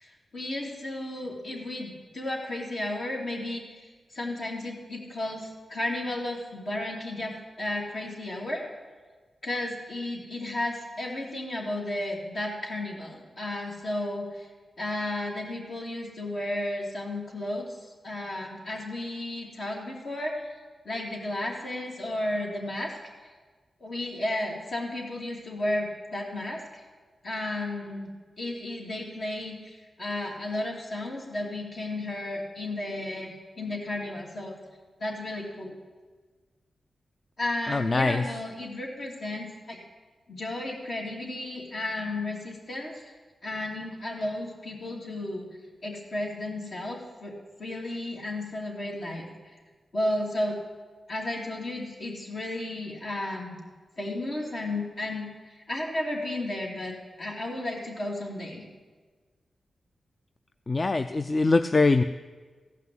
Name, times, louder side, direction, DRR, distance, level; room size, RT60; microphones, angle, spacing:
voice 1, 0.0-8.6 9.4-14.5 14.8-17.8 18.0-20.6 20.8-23.0 23.8-26.8 27.2-28.1 28.4-34.6 35.0-35.7 37.4-39.8 40.3-43.1 43.4-49.3 49.9-50.6 51.1-53.6 54.0-58.7, left 1 dB, 65° left, -2 dB, 2.7 m, -33 dB
voice 2, 37.7-38.2 60.7-62.0, left 3 dB, 40° left, 10 dB, 0.4 m, -23 dB
15.0 x 5.9 x 7.7 m, 1.4 s
cardioid pair, 60°, 0 cm